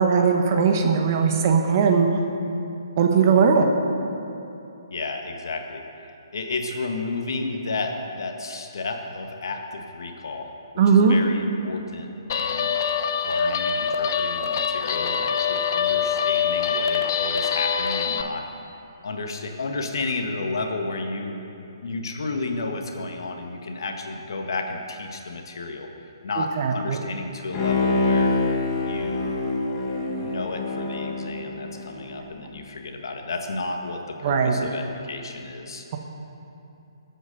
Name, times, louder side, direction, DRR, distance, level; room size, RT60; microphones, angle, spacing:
voice 1, 0.0-2.1 3.0-3.7 10.8-11.2 26.4-27.0 34.2-34.8, right 5 dB, 40° right, 3 dB, 1.4 m, -19 dB
voice 2, 4.9-5.8 6.3-10.5 10.9-12.1 12.3-12.8 13.2-18.5 19.0-21.4 21.8-25.9 26.2-28.4 28.8-29.4 30.2-35.9, left 3 dB, 60° left, 4 dB, 1.6 m, -32 dB
Guitar, 12.3-18.2, left 7 dB, 45° left, 0.7 m, -24 dB
Bowed string instrument, 27.5-32.1 32.5-32.6, left 3 dB, 25° left, 1.9 m, -25 dB
21.5 x 8.2 x 5.3 m, 2.8 s
figure-of-eight pair, 135°, 2 cm